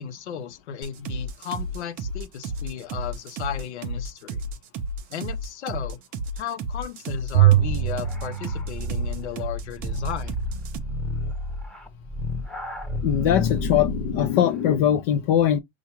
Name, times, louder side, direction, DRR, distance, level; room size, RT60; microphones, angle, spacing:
voice 1, 0.0-4.4 5.1-6.0 6.4-10.3, left 8 dB, 80° left, 0.8 m, -34 dB
sound 1, 0.8-10.8, right 1 dB, 25° right, 0.5 m, -32 dB
Bowed string instrument, 7.3-9.7, right 14 dB, 70° right, 0.6 m, -23 dB
sound 2, 7.5-14.4, left 1 dB, ahead, 0.8 m, -31 dB
voice 2, 13.0-15.6, left 10 dB, 35° left, 0.4 m, -21 dB
5.5 x 2.4 x 2.9 m
hypercardioid pair, 125°, 34 cm